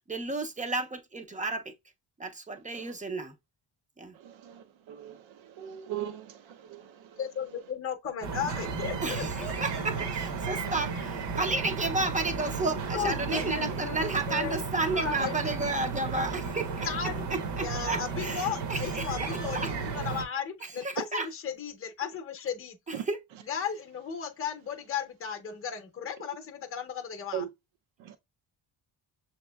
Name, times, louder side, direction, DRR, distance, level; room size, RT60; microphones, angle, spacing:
voice 1, 0.1-1.7 2.2-3.3 4.0-4.1 9.0-16.9 17.6-19.7 20.6-21.3 23.0-23.2, right 2 dB, 20° right, 0.4 m, -32 dB
voice 2, 5.6-6.3 6.7-6.8 27.3-27.5, right 10 dB, 90° right, 0.6 m, -35 dB
voice 3, 7.2-9.8 12.9-14.6 14.8-15.6 16.8-17.2 17.6-22.8 23.4-27.5, left 7 dB, 30° left, 0.7 m, -35 dB
sound 1, 8.2-20.2, right 5 dB, 65° right, 0.9 m, -34 dB
6.9 x 2.9 x 2.2 m
wide cardioid pair, 165°, 45 cm